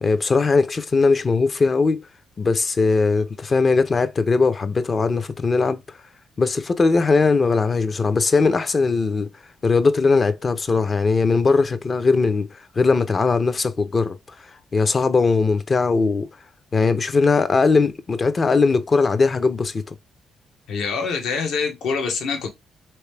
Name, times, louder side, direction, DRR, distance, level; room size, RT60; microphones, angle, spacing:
voice 1, 0.0-2.0 2.4-5.8 6.4-9.3 9.6-12.5 12.8-14.2 14.7-16.3 16.7-19.8, left 4 dB, 35° left, 0.5 m, -19 dB
voice 2, 20.7-22.5, left 5 dB, 75° left, 1.1 m, -25 dB
3.3 x 3.0 x 3.3 m
cardioid pair, 90°, 0 cm